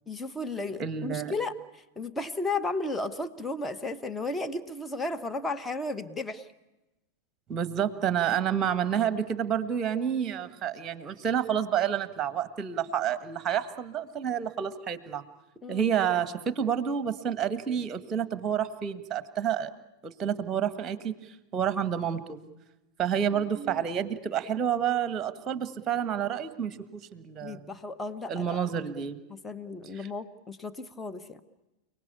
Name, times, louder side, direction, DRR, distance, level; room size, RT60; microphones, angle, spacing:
voice 1, 0.1-6.5 15.6-15.9 23.3-23.8 27.4-28.6 29.3-31.4, left 2 dB, 10° left, 9 dB, 1.2 m, -34 dB
voice 2, 0.8-1.3 7.5-15.2 15.7-19.7 20.0-21.1 21.5-22.4 23.0-27.7 28.3-29.2 29.9-30.1, right 8 dB, 25° right, 13 dB, 1.5 m, -29 dB
29.5 x 19.0 x 8.5 m, 1.0 s
figure-of-eight pair, 90°, 0 cm